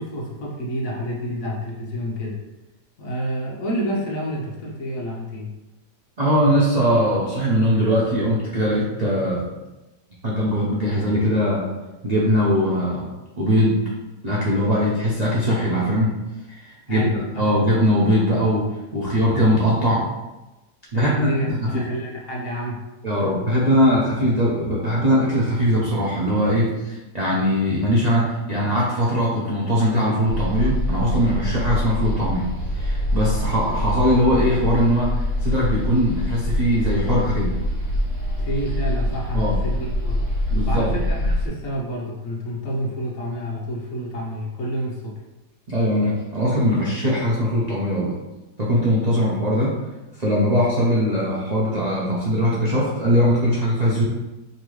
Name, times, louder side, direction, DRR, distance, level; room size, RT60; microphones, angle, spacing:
voice 1, 0.0-2.4 3.0-5.5 16.9-17.4 20.9-22.8 38.4-40.2 40.7-45.1, equal, 55° left, -3 dB, 1.1 m, -29 dB
voice 2, 6.2-9.5 10.2-11.7 12.0-13.1 13.4-13.8 14.2-16.2 16.6-17.0 17.3-20.1 20.9-21.8 23.0-32.5 32.7-37.6 39.3-39.6 40.5-40.9 45.7-48.2 48.6-49.8 50.2-54.1, equal, 80° right, -6 dB, 0.3 m, -21 dB
sound 1, 30.3-41.5, left 1 dB, 50° right, 1.1 m, -25 dB
5.2 x 2.9 x 3.1 m, 1.0 s
omnidirectional pair, 1.9 m